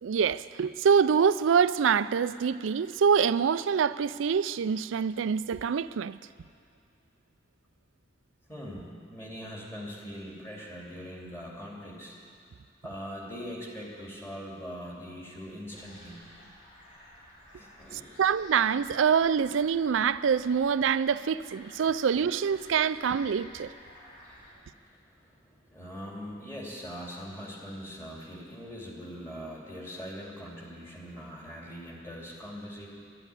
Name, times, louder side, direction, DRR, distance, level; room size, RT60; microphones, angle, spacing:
voice 1, 0.0-6.2 18.2-23.7, right 6 dB, 85° right, 0.4 m, -25 dB
voice 2, 8.5-12.2 12.8-16.2 17.5-18.1 24.1-32.9, equal, 15° left, 2.8 m, -42 dB
sound 1, 15.7-24.5, left 1 dB, 40° left, 3.4 m, -53 dB
11.5 x 11.0 x 9.7 m
head